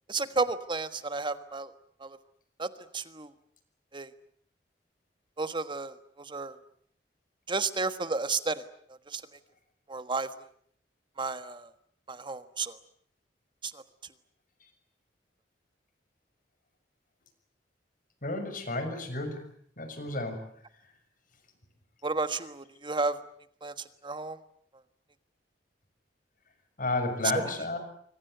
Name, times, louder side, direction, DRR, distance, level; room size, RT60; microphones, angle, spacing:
voice 1, 0.1-1.7 2.0-2.2 2.6-3.3 3.9-4.1 5.4-6.6 7.5-8.6 8.9-9.2 9.9-10.3 11.2-11.7 12.1-12.8 13.6-13.8 22.0-23.2 23.6-23.7 24.0-24.4 27.3-27.4, right 3 dB, 30° right, 11 dB, 1.4 m, -32 dB
voice 2, 18.2-19.4 19.8-20.4 26.8-27.8, left 2 dB, 50° left, 8 dB, 6.4 m, -31 dB
26.0 x 24.0 x 8.0 m, 0.64 s
head